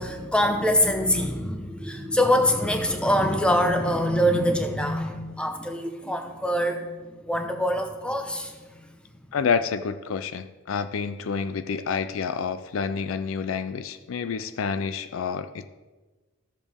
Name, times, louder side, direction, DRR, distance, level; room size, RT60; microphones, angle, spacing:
voice 1, 0.0-8.6, equal, 5° left, 4 dB, 0.8 m, -24 dB
voice 2, 9.3-15.7, left 5 dB, 70° left, 13 dB, 0.4 m, -28 dB
13.5 x 7.2 x 3.5 m, 1.3 s
head